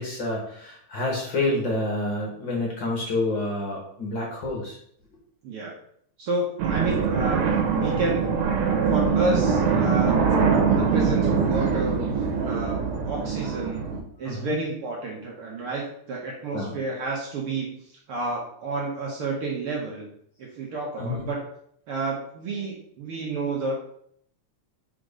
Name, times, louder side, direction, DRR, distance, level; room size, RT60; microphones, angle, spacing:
voice 1, 0.0-4.8 14.2-14.6 16.5-16.8 21.0-21.3, left 2 dB, 50° left, -2 dB, 1.7 m, -28 dB
voice 2, 6.2-7.5 7.7-8.4 8.9-10.3 10.7-12.0 12.4-13.9 14.2-17.7 18.1-20.1 20.4-21.4 21.9-23.8, right 2 dB, 60° right, -2 dB, 1.7 m, -30 dB
sound 1, 6.6-14.0, right 5 dB, 80° right, 2.3 m, -23 dB
5.1 x 4.4 x 5.0 m, 0.66 s
omnidirectional pair, 3.3 m